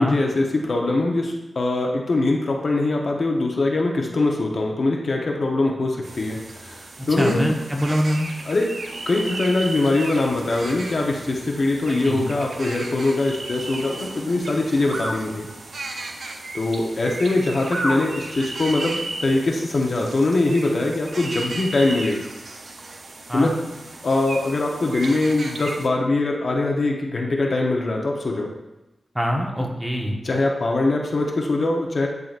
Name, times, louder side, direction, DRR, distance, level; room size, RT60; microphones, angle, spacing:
voice 1, 0.0-7.5 8.5-8.7 9.1-15.5 16.5-22.2 23.3-23.5 24.0-28.5 30.2-32.1, left 2 dB, 60° left, 0 dB, 1.0 m, -22 dB
sound 1, 6.0-25.9, right 2 dB, 70° right, 0.7 m, -34 dB
voice 2, 7.0-8.3 11.9-12.3 23.3-23.5 29.1-30.2, equal, 10° right, 0 dB, 1.2 m, -24 dB
10.5 x 3.9 x 2.5 m, 1.0 s
cardioid pair, 55°, 0 cm